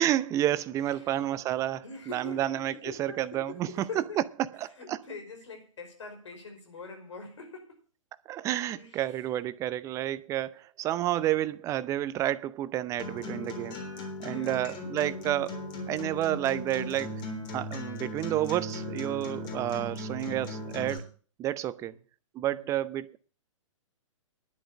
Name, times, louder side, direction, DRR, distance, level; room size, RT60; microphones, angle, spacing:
voice 1, 0.0-3.7 4.6-5.0 8.3-13.8 14.2-15.6 15.9-17.2 17.5-21.1 21.4-21.9 22.3-23.2, right 13 dB, 20° right, 0.5 m, -30 dB
voice 2, 0.9-1.4 1.8-4.2 4.7-7.8 8.8-9.2 14.3-14.8 21.8-22.0 22.5-22.7, left 4 dB, 60° left, 5.2 m, -44 dB
Acoustic guitar, 13.0-21.0, left 1 dB, 25° left, 3.7 m, -38 dB
10.5 x 7.5 x 8.6 m
figure-of-eight pair, 115°, 17 cm